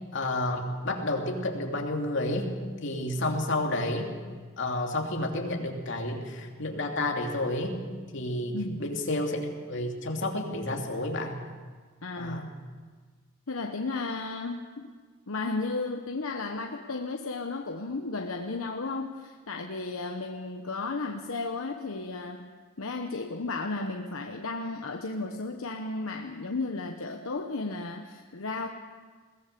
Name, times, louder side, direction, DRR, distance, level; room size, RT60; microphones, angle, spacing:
voice 1, 0.1-2.5 2.8-4.2 4.6-7.8 8.1-11.4 12.1-12.5, left 1 dB, 60° left, 1 dB, 2.8 m, -30 dB
voice 2, 8.5-8.8 12.0-12.4 13.5-14.9 15.3-22.5 22.8-28.7, left 3 dB, 85° left, 3 dB, 1.1 m, -34 dB
21.5 x 17.5 x 6.8 m, 1.5 s
head